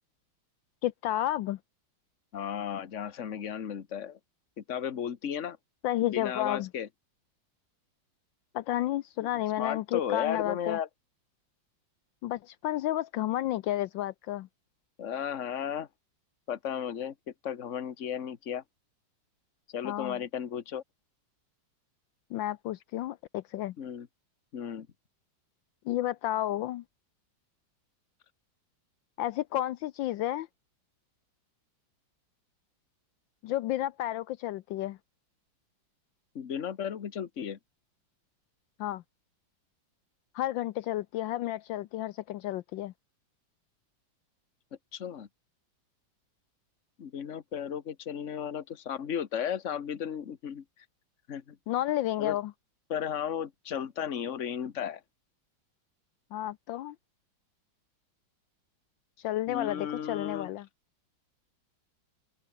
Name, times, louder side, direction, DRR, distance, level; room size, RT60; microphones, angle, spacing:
voice 1, 0.8-1.6 5.8-6.7 8.5-10.8 12.2-14.5 19.8-20.2 22.3-23.7 25.9-26.8 29.2-30.5 33.4-35.0 38.8-39.0 40.3-42.9 51.7-52.5 56.3-56.9 59.2-60.7, left 13 dB, 75° left, 1.3 m, -31 dB
voice 2, 2.3-4.2 4.6-5.6 6.0-6.9 9.6-10.9 15.0-15.9 16.5-17.1 17.4-18.6 19.7-20.8 23.8-24.1 24.5-24.9 36.3-37.6 44.9-45.3 47.0-50.6 51.3-51.6 52.2-52.4 52.9-55.0 59.5-60.5, left 8 dB, 40° left, 1.5 m, -34 dB
omnidirectional pair, 2.1 m